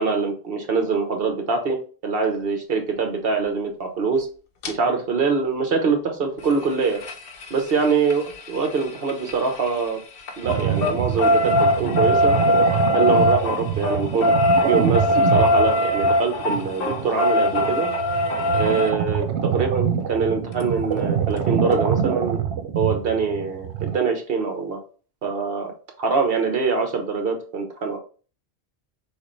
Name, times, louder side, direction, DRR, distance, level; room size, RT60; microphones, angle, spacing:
voice 1, 0.0-1.8 2.0-4.3 4.7-7.0 7.5-10.0 10.4-12.4 12.9-14.3 14.7-17.9 18.5-22.4 22.7-24.8 25.2-25.7 26.0-28.0, right 5 dB, 60° right, 4 dB, 1.2 m, -24 dB
sound 1, 4.6-4.7 6.4-9.9 10.2-18.9 20.6-20.7 21.0-21.1 21.4-21.5, left 1 dB, 60° left, 0.9 m, -21 dB
sound 2, 10.4-23.9, right 8 dB, 85° right, 0.9 m, -25 dB
6.3 x 2.6 x 3.2 m, 0.38 s
omnidirectional pair, 1.1 m